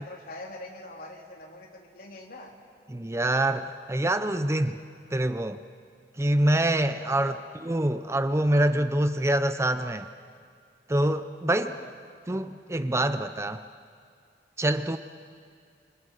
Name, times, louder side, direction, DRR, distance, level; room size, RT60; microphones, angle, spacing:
voice 1, 0.0-2.6 7.0-7.4 11.6-11.9, left 1 dB, 55° left, 0 dB, 3.8 m, -43 dB
voice 2, 2.9-4.8 5.1-5.6 6.2-7.3 7.6-10.1 10.9-11.7 12.3-13.6 14.6-15.0, right 1 dB, 15° right, 10 dB, 0.6 m, -25 dB
29.0 x 27.0 x 6.6 m, 2.3 s
head